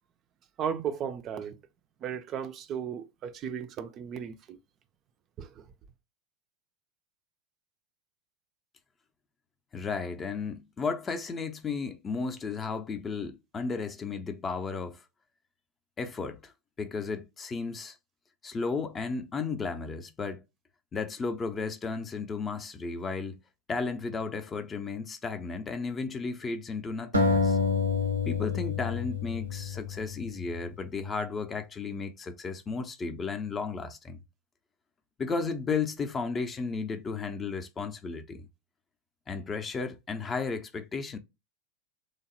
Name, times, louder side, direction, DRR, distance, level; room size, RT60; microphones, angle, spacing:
voice 1, 0.6-1.6 2.0-4.6 5.4-5.6, right 8 dB, 35° right, 0.3 m, -35 dB
voice 2, 9.7-15.0 16.0-16.5 16.8-18.0 18.4-20.4 20.9-23.4 23.7-27.6 28.3-34.2 35.2-38.5 39.3-41.2, left 4 dB, 25° left, 0.4 m, -34 dB
sound 1, 27.1-30.4, left 4 dB, 85° right, 0.7 m, -28 dB
3.0 x 2.0 x 2.8 m
figure-of-eight pair, 85°, 0 cm